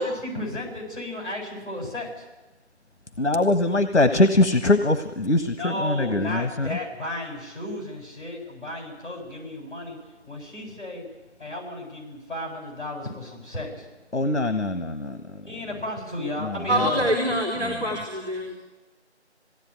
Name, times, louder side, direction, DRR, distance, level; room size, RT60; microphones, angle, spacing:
voice 1, 0.0-2.2 5.5-10.0 10.3-11.0 11.4-13.8 15.5-17.1, left 1 dB, 45° left, 0 dB, 7.4 m, -33 dB
voice 2, 3.2-6.8 14.1-15.2 16.4-16.9 17.6-17.8, left 2 dB, 85° left, 8 dB, 1.3 m, -22 dB
voice 3, 16.7-18.6, equal, 35° right, -1 dB, 3.6 m, -25 dB
21.0 x 17.0 x 9.3 m, 1.1 s
figure-of-eight pair, 175°, 35 cm